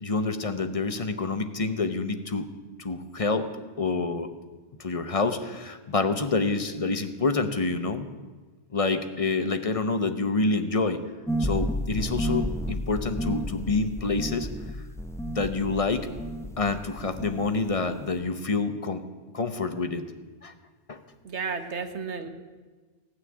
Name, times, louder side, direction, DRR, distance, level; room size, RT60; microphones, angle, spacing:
voice 1, 0.0-2.5 2.8-3.5 3.8-4.3 4.8-8.1 8.7-11.0 11.4-14.5 15.3-16.1 16.6-19.0 19.3-20.0 20.4-20.5 20.9-21.0, left 3 dB, 35° left, 9 dB, 0.8 m, -27 dB
sound 1, 11.3-16.7 17.0-17.7, equal, 5° left, 0.5 m, -31 dB
voice 2, 21.2-22.3, right 5 dB, 70° right, 7 dB, 1.5 m, -32 dB
16.5 x 6.4 x 9.6 m, 1.3 s
omnidirectional pair, 1.2 m